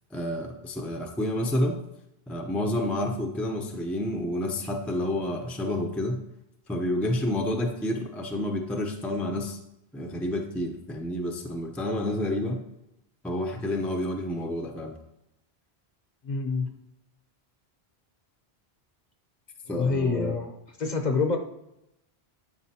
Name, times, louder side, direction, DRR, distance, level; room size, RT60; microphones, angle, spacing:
voice 1, 0.1-1.8 2.3-6.2 6.7-9.6 9.9-12.6 13.2-14.9 19.7-20.4, left 1 dB, ahead, 3 dB, 0.6 m, -29 dB
voice 2, 16.2-16.7 19.7-20.5 20.8-21.4, left 4 dB, 45° left, 4 dB, 0.8 m, -27 dB
11.0 x 5.0 x 2.8 m, 0.85 s
omnidirectional pair, 1.1 m